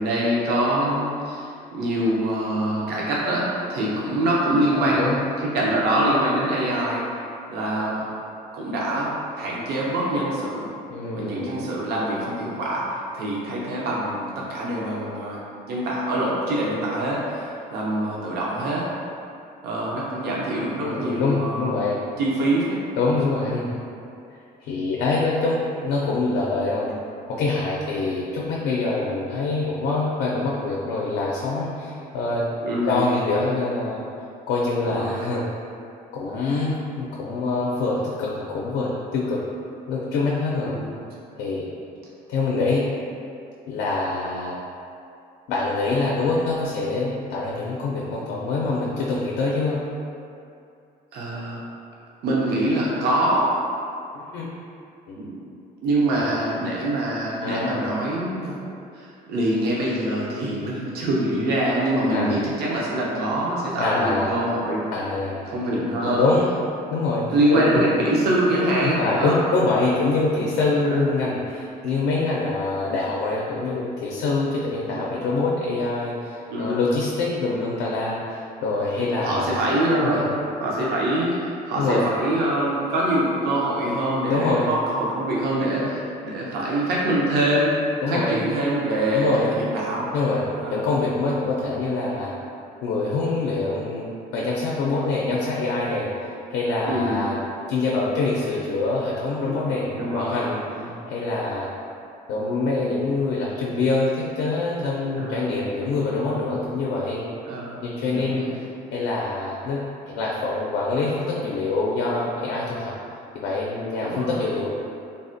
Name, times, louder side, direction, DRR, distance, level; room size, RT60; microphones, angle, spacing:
voice 1, 0.0-5.2 5.5-7.0 7.5-8.1 8.5-10.7 11.1-18.9 19.6-21.8 22.2-22.8 32.6-33.1 34.8-35.3 40.6-40.9 51.1-51.6 52.2-53.5 55.2-55.4 55.8-58.6 58.9-64.8 65.4-66.2 67.3-69.4 70.8-71.0 71.8-71.9 74.9-75.0 76.5-76.8 79.0-87.8 88.1-90.1 90.5-90.8 96.9-97.3 99.5-100.5 100.8-101.0 105.1-105.5 107.4-107.8 108.1-108.6 114.0-114.4, right 1 dB, 70° right, -5 dB, 0.5 m, -24 dB
voice 2, 4.7-5.2 10.9-11.5 20.8-22.0 23.0-23.8 24.6-26.9 27.3-32.5 32.9-34.0 34.5-35.4 36.1-39.4 39.9-40.8 41.3-41.7 42.3-42.9 43.7-44.6 45.5-49.8 54.1-54.5 55.1-55.2 56.1-56.3 57.4-58.0 62.1-62.3 63.8-64.3 64.9-65.5 66.0-66.6 66.9-68.0 68.8-79.6 80.0-80.2 81.8-82.0 84.2-84.7 85.8-85.9 88.0-88.4 89.1-89.5 90.1-90.4 90.7-92.3 92.8-97.4 97.7-100.6 101.1-101.7 102.3-107.2 107.8-108.5 108.9-112.9 113.3-114.7, left 3 dB, 85° left, -4 dB, 0.4 m, -25 dB
3.4 x 2.1 x 2.6 m, 2.6 s
cardioid pair, 110°, 17 cm